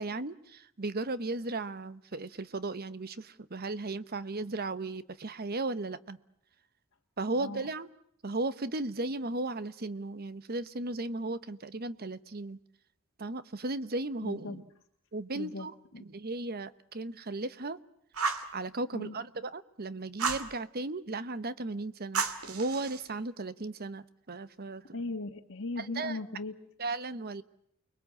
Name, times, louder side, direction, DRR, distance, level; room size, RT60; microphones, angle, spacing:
voice 1, 0.0-6.2 7.2-7.9 8.2-12.6 13.2-14.6 15.1-15.7 16.0-17.8 18.5-24.8 25.8-26.2 26.8-27.4, right 2 dB, 45° right, 14 dB, 1.0 m, -36 dB
voice 2, 14.2-14.6 15.3-16.0 18.9-19.1 24.9-26.5, left 3 dB, 60° left, 1 dB, 1.7 m, -38 dB
Fire, 18.1-18.5 20.2-20.5 22.1-23.1, right 5 dB, 80° right, 2.1 m, -32 dB
30.0 x 21.5 x 8.6 m, 0.72 s
head